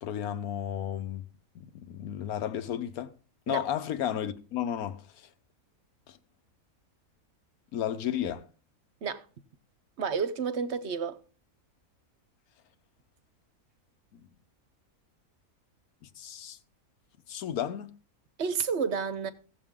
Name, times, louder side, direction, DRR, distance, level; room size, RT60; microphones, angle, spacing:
voice 1, 0.0-1.2 1.5-3.1 3.5-5.3 6.1-6.2 7.7-8.5 14.1-14.3 16.0-16.6 17.3-17.9, left 10 dB, 75° left, 1.3 m, -33 dB
voice 2, 10.0-11.2 18.4-19.3, right 6 dB, 55° right, 1.1 m, -30 dB
16.5 x 7.3 x 3.7 m
omnidirectional pair, 1.6 m